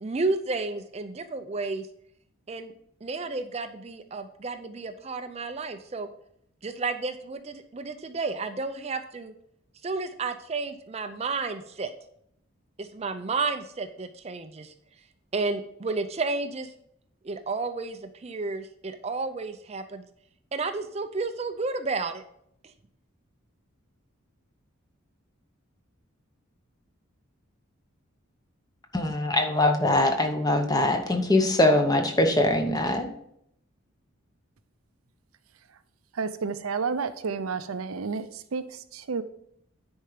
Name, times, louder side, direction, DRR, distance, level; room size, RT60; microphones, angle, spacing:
voice 1, 0.0-1.9 2.5-2.7 3.0-6.1 6.6-9.3 9.8-11.9 12.8-14.7 15.3-16.7 17.2-20.0 20.5-22.2 22.6-22.7, right 3 dB, 30° right, 9 dB, 0.4 m, -31 dB
voice 2, 28.9-33.1, left 1 dB, 20° left, 5 dB, 0.9 m, -22 dB
voice 3, 36.1-39.2, right 5 dB, 90° right, 12 dB, 0.6 m, -31 dB
9.9 x 4.4 x 5.0 m, 0.72 s
head